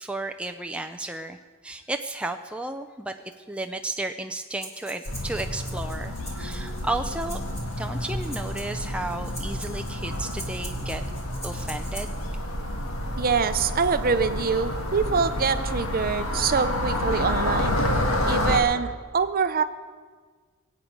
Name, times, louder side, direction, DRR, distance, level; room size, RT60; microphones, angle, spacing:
voice 1, 0.0-1.4 1.6-3.1 3.5-7.4 7.8-11.0 11.4-12.2, right 2 dB, 5° right, 5 dB, 0.4 m, -33 dB
Breathing, 4.5-12.3, right 1 dB, 15° left, 1.7 m, -43 dB
sound 1, 5.1-18.6, left 1 dB, 65° left, 1.6 m, -29 dB
voice 2, 13.2-17.8 18.2-19.6, right 5 dB, 40° right, 11 dB, 0.7 m, -24 dB
22.5 x 8.6 x 5.2 m, 1.5 s
head